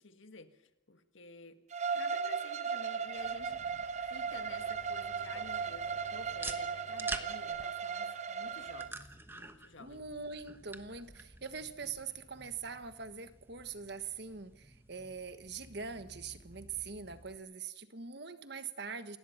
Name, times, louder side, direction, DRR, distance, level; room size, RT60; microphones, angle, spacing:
voice 1, 0.0-1.6 1.9-9.0 9.3-10.2, left 3 dB, 70° left, 1.7 m, -53 dB
Bowed string instrument, 1.7-8.9, right 6 dB, 35° right, 0.8 m, -37 dB
sound 1, 3.1-17.4, right 2 dB, 10° right, 1.1 m, -49 dB
Bowed string instrument 2, 4.2-8.9, right 1 dB, 80° right, 8.0 m, -59 dB
voice 2, 9.8-19.2, right 5 dB, 55° right, 1.4 m, -43 dB
28.0 x 19.0 x 5.8 m
head